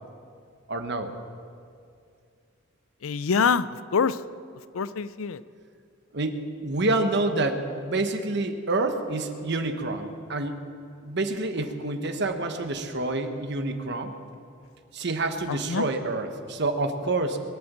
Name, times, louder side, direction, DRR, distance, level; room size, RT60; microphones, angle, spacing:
voice 1, 0.7-1.1 6.1-10.6 11.0-14.1 14.9-17.4, right 2 dB, 55° right, 6 dB, 1.2 m, -28 dB
voice 2, 3.0-4.2 4.7-5.4 15.5-15.8, left 6 dB, 85° left, 15 dB, 0.5 m, -25 dB
22.5 x 8.6 x 7.4 m, 2.4 s
head